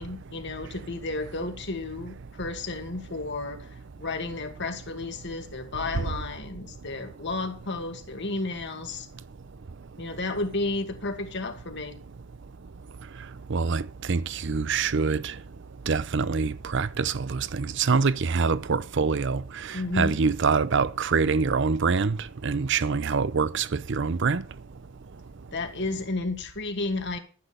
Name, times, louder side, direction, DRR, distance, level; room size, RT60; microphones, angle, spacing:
voice 1, 0.0-9.1 10.0-12.0 19.7-20.2 25.5-27.2, left 2 dB, 60° left, 2.3 m, -32 dB
voice 2, 9.1-10.0 12.6-25.5, right 5 dB, 60° right, 0.6 m, -26 dB
12.5 x 10.0 x 5.1 m
head